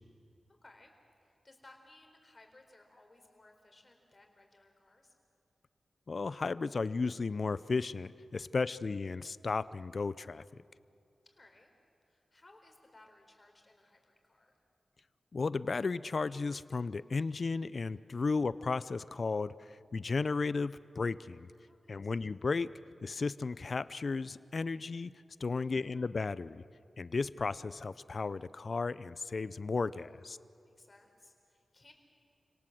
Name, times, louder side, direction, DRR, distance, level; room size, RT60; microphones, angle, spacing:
voice 1, 0.6-0.9 1.2-5.1 8.4-8.5 11.2-11.7 12.1-14.6 21.7-22.1 25.5-25.9 30.0-31.9, left 2 dB, 40° left, 4 dB, 4.2 m, -61 dB
voice 2, 6.1-10.4 15.3-19.5 19.9-21.5 21.9-22.7 23.0-25.1 25.4-26.6 27.0-30.4, left 4 dB, 60° left, 17 dB, 0.6 m, -34 dB
29.5 x 18.0 x 7.7 m, 2.5 s
cardioid pair, 45°, 0 cm